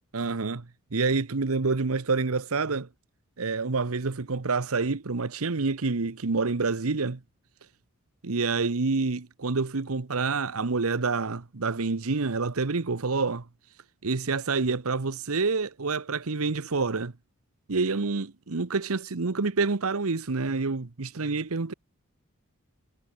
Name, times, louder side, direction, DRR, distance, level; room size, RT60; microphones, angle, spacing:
voice 1, 0.1-0.6 0.9-2.9 3.4-7.2 8.2-13.4 14.0-17.1 17.7-21.7, right 4 dB, 85° right, 1.0 m, -27 dB
head